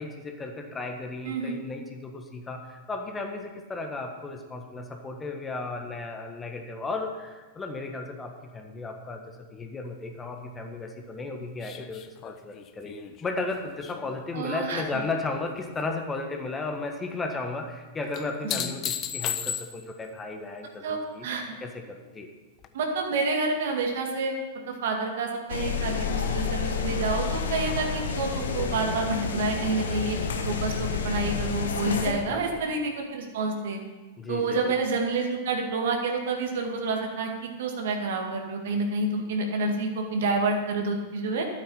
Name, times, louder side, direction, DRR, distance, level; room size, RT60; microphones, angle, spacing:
voice 1, 0.0-9.2 9.5-12.9 13.2-21.3 21.6-22.3 32.3-32.6 34.2-34.7, left 3 dB, 15° left, 4 dB, 1.5 m, -35 dB
voice 2, 1.2-1.6 14.3-14.8 18.5-18.6 20.8-21.4 22.7-24.3 24.7-30.2 30.5-33.8 34.3-41.4, right 3 dB, 60° right, 2 dB, 2.1 m, -28 dB
sound 1, 11.6-15.1 15.4-16.1 18.1-20.0 22.6-22.7, left 9 dB, 35° left, 0.8 m, -35 dB
sound 2, 25.5-32.1, left 6 dB, 70° left, 1.3 m, -29 dB
12.0 x 8.9 x 5.6 m, 1.2 s
figure-of-eight pair, 95°, 0 cm